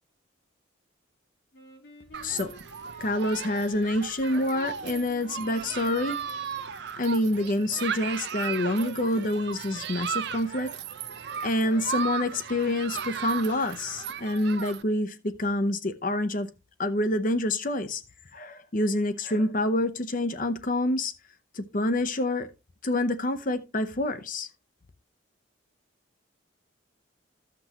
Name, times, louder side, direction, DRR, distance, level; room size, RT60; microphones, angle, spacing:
Wind instrument woodwind instrument, 1.5-6.6, equal, 55° left, 3.8 m, -50 dB
Human group actions, 2.1-14.8, right 7 dB, 55° right, 0.6 m, -36 dB
voice 1, 2.2-2.5 3.0-6.2 7.0-10.8 11.4-16.5 16.8-18.0 18.3-21.1 21.5-22.5 22.8-24.5, left 1 dB, 40° left, 0.7 m, -27 dB
14.5 x 6.0 x 2.9 m
head